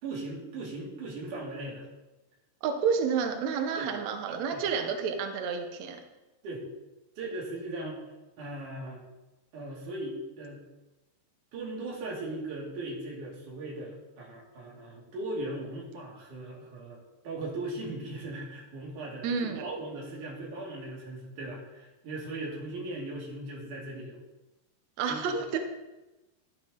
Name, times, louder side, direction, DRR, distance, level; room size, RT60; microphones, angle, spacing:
voice 1, 0.0-1.9 3.8-3.9 4.5-4.6 6.4-6.6 7.2-8.0 8.4-9.0 9.5-10.6 11.5-24.2 25.1-25.2, right 2 dB, 55° right, -4 dB, 3.7 m, -38 dB
voice 2, 2.6-6.0 19.2-19.6 25.0-25.6, right 6 dB, 85° right, 5 dB, 1.5 m, -30 dB
12.0 x 8.4 x 3.7 m, 1.1 s
omnidirectional pair, 4.5 m